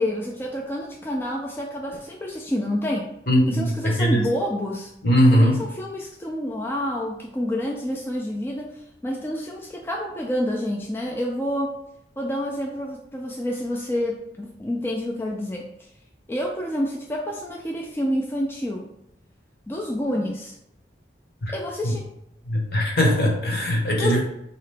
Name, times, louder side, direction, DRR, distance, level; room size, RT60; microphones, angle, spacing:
voice 1, 0.0-3.1 3.5-4.9 5.3-11.7 12.2-15.7 16.3-18.8 19.7-20.5 21.5-22.0 24.0-24.2, left 1 dB, 10° left, -2 dB, 0.3 m, -28 dB
voice 2, 3.3-4.2 5.0-5.6 21.4-21.5 21.8-21.9 22.5-24.2, equal, 55° left, 0 dB, 1.0 m, -20 dB
3.8 x 2.8 x 3.3 m, 0.80 s
head